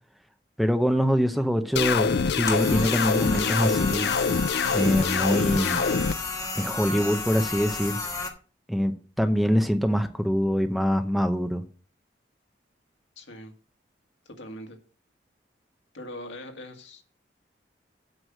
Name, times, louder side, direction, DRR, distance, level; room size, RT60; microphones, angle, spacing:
voice 1, 0.6-4.1 4.7-5.8 6.6-8.0 8.7-11.6, equal, ahead, 0.7 m, -24 dB
sound 1, 1.8-6.1, left 5 dB, 65° left, 0.4 m, -25 dB
sound 2, 2.5-8.3, left 3 dB, 20° left, 1.4 m, -33 dB
voice 2, 13.2-13.5 14.3-14.8 15.9-17.0, left 1 dB, 90° left, 1.9 m, -41 dB
8.0 x 6.1 x 7.4 m
head